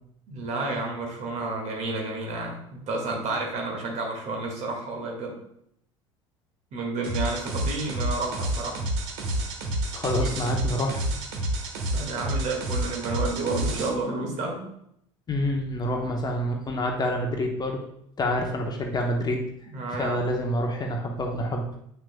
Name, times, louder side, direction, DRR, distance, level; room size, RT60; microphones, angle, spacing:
voice 1, 0.3-5.4 6.7-8.8 10.1-10.3 11.9-14.7 19.7-20.2, right 3 dB, 45° right, 0 dB, 1.9 m, -31 dB
sound 1, 7.0-13.9, right 1 dB, 60° right, 1.2 m, -29 dB
voice 2, 9.9-11.1 15.3-17.8 18.2-19.4 20.0-21.6, left 1 dB, 25° left, 2 dB, 0.9 m, -27 dB
8.0 x 6.0 x 2.2 m, 0.73 s
figure-of-eight pair, 65°, 16 cm